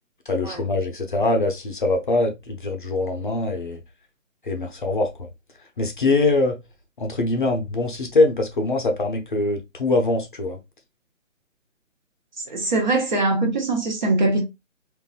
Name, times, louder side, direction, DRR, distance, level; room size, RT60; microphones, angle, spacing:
voice 1, 0.3-3.8 4.4-5.1 5.8-6.6 7.0-10.6, left 2 dB, 40° left, 0.7 m, -23 dB
voice 2, 12.5-14.4, right 2 dB, 35° right, 0.9 m, -22 dB
3.8 x 2.6 x 2.3 m
figure-of-eight pair, 145°, 40 cm